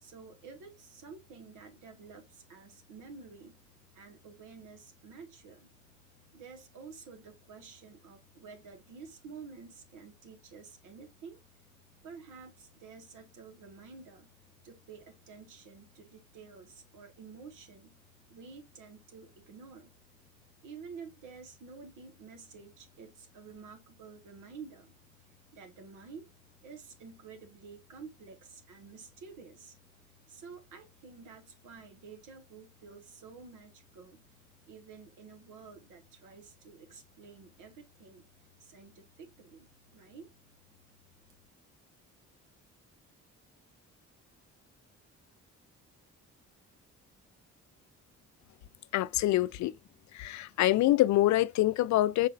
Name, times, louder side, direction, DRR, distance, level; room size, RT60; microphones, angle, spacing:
voice 1, 0.0-3.6 3.9-5.7 6.3-11.4 12.0-14.3 14.6-17.9 18.3-19.9 20.6-24.9 25.5-26.3 26.6-29.7 30.3-34.2 34.7-38.2 38.6-40.3, right 5 dB, 85° right, 1.5 m, -50 dB
voice 2, 48.9-49.7 50.1-52.3, left 15 dB, 70° left, 0.4 m, -25 dB
5.4 x 4.0 x 2.4 m
cardioid pair, 90°, 30 cm